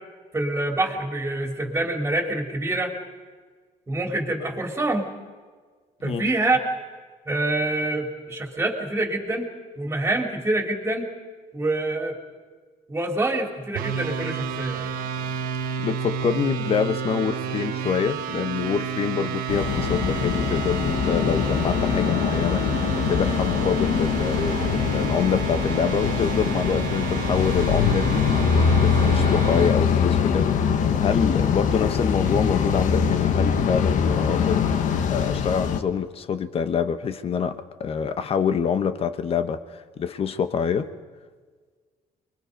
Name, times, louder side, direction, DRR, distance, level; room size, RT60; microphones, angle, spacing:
voice 1, 0.3-2.9 3.9-5.1 6.0-6.6 7.3-9.5 9.8-11.1 11.5-12.1 12.9-14.8, right 2 dB, 15° right, 3 dB, 3.2 m, -26 dB
sound 1, 13.8-29.8, right 7 dB, 85° right, 1.1 m, -31 dB
voice 2, 15.8-28.3 28.7-34.7 35.1-40.9, left 7 dB, 40° left, 11 dB, 1.1 m, -26 dB
sound 2, 19.5-35.8, left 7 dB, 60° left, 1.4 m, -23 dB
29.5 x 22.0 x 5.3 m, 1.5 s
cardioid pair, 130°, 15 cm